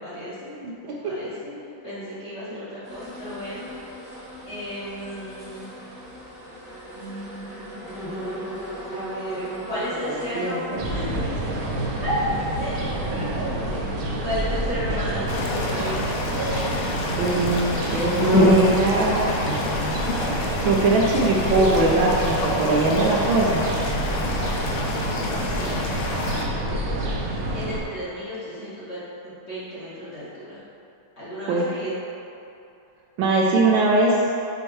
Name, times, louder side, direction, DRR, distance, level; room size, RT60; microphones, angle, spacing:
voice 1, 0.0-0.6 1.0-3.8 4.5-5.7 6.9-8.4 8.9-10.6 10.9-11.3 12.0-12.2 12.6-16.1 25.5-25.8 26.3-30.6 31.2-32.0, equal, 35° left, -11 dB, 1.3 m, -34 dB
voice 2, 0.6-0.9 10.3-10.8 17.2-20.0 20.3-23.6 31.5-31.7 33.2-34.1, right 2 dB, 75° right, -2 dB, 1.3 m, -22 dB
sound 1, 2.8-18.8, left 1 dB, 20° left, 0.7 m, -30 dB
sound 2, 10.8-27.8, right 1 dB, 90° right, 0.7 m, -28 dB
sound 3, 15.3-26.5, left 2 dB, 85° left, 1.6 m, -30 dB
6.3 x 4.9 x 3.1 m, 2.7 s
omnidirectional pair, 2.4 m